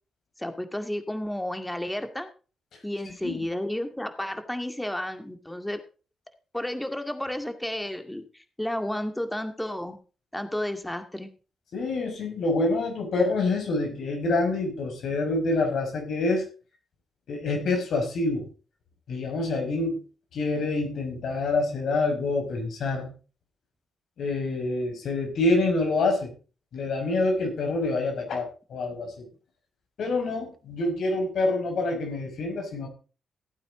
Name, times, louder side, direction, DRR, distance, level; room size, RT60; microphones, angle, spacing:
voice 1, 0.4-2.3 2.8-5.8 6.5-10.0 10.3-11.3, left 1 dB, 10° left, 7 dB, 2.1 m, -32 dB
voice 2, 11.7-16.4 17.3-18.5 19.1-20.0 20.3-23.1 24.2-26.3 26.7-29.3 30.0-32.9, left 2 dB, 70° left, 2 dB, 5.6 m, -26 dB
16.0 x 8.9 x 3.9 m, 0.35 s
cardioid pair, 70°, 0 cm